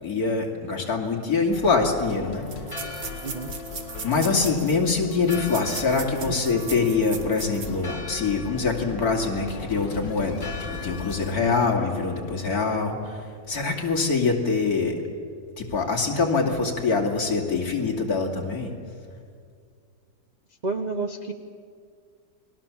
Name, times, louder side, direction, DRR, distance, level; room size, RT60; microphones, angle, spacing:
voice 1, 0.0-2.5 4.0-10.5 10.8-15.0 15.6-18.7, left 4 dB, 55° left, 1 dB, 3.1 m, -24 dB
sound 1, 1.4-1.5 1.6-1.7 2.4-7.9 8.3-8.4 8.8-9.0, right 5 dB, 70° right, 2.3 m, -39 dB
sound 2, 1.5-12.6, left 4 dB, 85° left, 2.2 m, -39 dB
Church bell, 2.4-12.6, left 3 dB, 15° left, 2.8 m, -42 dB
voice 2, 20.6-21.3, right 3 dB, 35° right, 5 dB, 0.7 m, -30 dB
29.5 x 20.5 x 7.3 m, 2.2 s
omnidirectional pair, 1.9 m